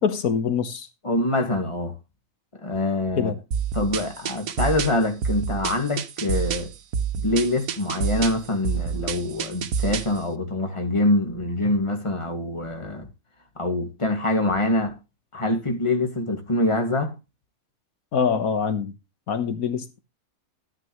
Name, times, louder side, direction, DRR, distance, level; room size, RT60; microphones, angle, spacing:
voice 1, 0.0-0.9 3.2-3.4 18.1-18.9 19.3-20.0, left 6 dB, 85° left, 1.7 m, -24 dB
voice 2, 1.0-1.9 2.6-3.3 3.7-6.7 7.2-13.1 13.6-15.0 15.3-17.1, left 2 dB, 20° left, 2.1 m, -25 dB
sound 1, 3.5-10.2, right 7 dB, 85° right, 1.4 m, -28 dB
13.5 x 9.8 x 3.1 m
omnidirectional pair, 1.5 m